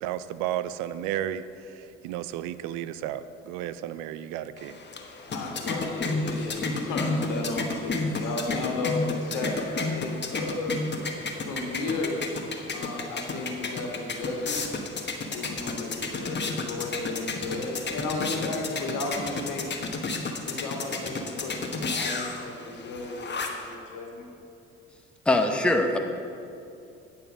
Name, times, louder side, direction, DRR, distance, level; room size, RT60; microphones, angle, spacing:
voice 1, 0.0-4.8, right 11 dB, 75° right, 14 dB, 0.5 m, -33 dB
sound 1, 4.6-23.7, left 3 dB, 30° left, 1.2 m, -32 dB
voice 2, 4.9-10.8 11.5-12.2 12.7-14.8 15.3-19.7 20.4-24.3, left 2 dB, 70° left, 1 dB, 1.8 m, -34 dB
voice 3, 25.3-26.0, left 2 dB, 5° left, 4 dB, 0.9 m, -22 dB
9.2 x 5.5 x 6.2 m, 2.6 s
hypercardioid pair, 55°, 33 cm